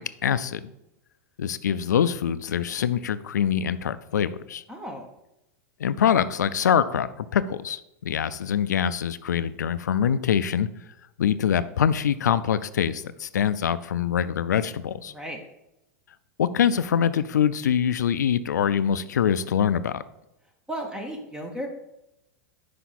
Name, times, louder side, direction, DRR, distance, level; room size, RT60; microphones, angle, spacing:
voice 1, 0.2-0.6 1.4-4.6 5.8-10.7 11.2-15.1 16.4-20.0, left 8 dB, 90° left, 15 dB, 0.4 m, -24 dB
voice 2, 4.7-5.1 15.1-15.4 20.7-21.7, right 1 dB, 10° right, 3 dB, 0.9 m, -34 dB
5.7 x 5.0 x 4.1 m, 0.89 s
hypercardioid pair, 110°, 9 cm